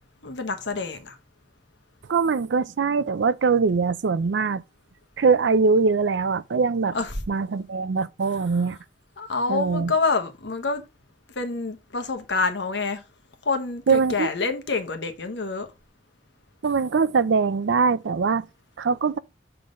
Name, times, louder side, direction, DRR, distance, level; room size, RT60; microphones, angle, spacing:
voice 1, 0.2-1.2 6.9-7.2 8.5-8.6 9.2-10.8 11.3-13.0 13.4-15.7, left 4 dB, 85° left, 1.2 m, -27 dB
voice 2, 2.1-4.6 5.2-7.0 7.3-8.8 9.5-9.9 13.9-14.3 16.6-18.5 18.8-19.2, right 5 dB, 90° right, 0.5 m, -22 dB
6.8 x 3.8 x 5.2 m
head